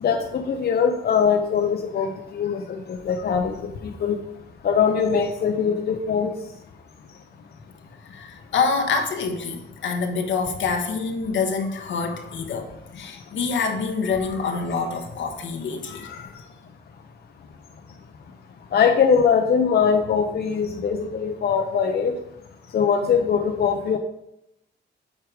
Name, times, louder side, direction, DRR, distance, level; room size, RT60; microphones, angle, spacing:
voice 1, 0.0-4.2 4.6-6.3 18.7-22.1 22.7-24.0, left 6 dB, 55° left, 5 dB, 0.7 m, -22 dB
voice 2, 8.0-16.4, left 4 dB, 80° left, 5 dB, 1.2 m, -26 dB
8.0 x 4.8 x 4.9 m, 0.82 s
wide cardioid pair, 130°, 19 cm